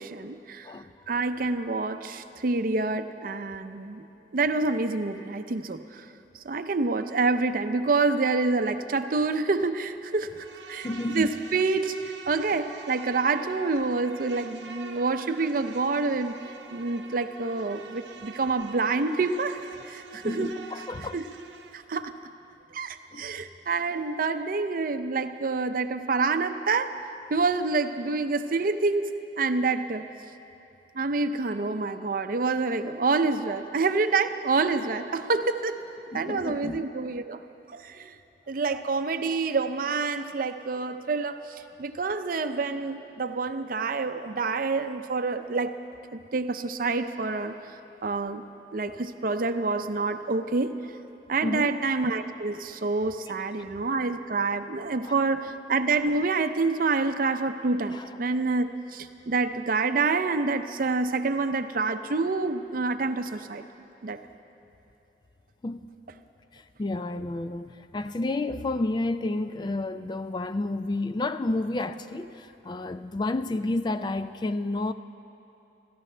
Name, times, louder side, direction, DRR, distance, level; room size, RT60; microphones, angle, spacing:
voice 1, 0.0-0.7 1.1-4.0 4.3-6.1 6.4-10.9 11.1-16.4 16.7-20.5 21.1-21.2 21.7-22.1 22.7-27.0 27.3-30.1 30.9-35.8 36.1-37.4 37.7-38.2 38.5-45.8 46.1-47.8 48.0-48.4 48.7-50.8 51.3-63.6 64.0-64.2, right 3 dB, 50° right, 9 dB, 0.6 m, -27 dB
Insect, 10.3-21.8, right 4 dB, 80° right, 0.8 m, -45 dB
voice 2, 10.8-11.4 20.1-21.2 23.1-23.3 36.1-36.8 38.7-38.8 51.4-51.7 55.0-55.2 57.9-58.1 65.6-65.9 66.5-74.9, left 2 dB, 25° left, 10 dB, 0.3 m, -30 dB
27.5 x 14.0 x 3.3 m, 2.8 s
head